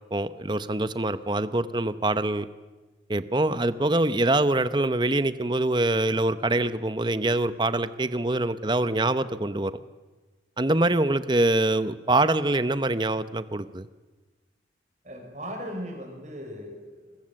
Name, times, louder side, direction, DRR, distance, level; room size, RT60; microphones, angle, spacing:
voice 1, 0.1-2.5 3.1-9.7 10.6-13.9, right 2 dB, 25° right, 13 dB, 0.8 m, -24 dB
voice 2, 15.0-17.2, equal, 40° right, 2 dB, 6.3 m, -38 dB
27.0 x 22.0 x 7.7 m, 1.2 s
head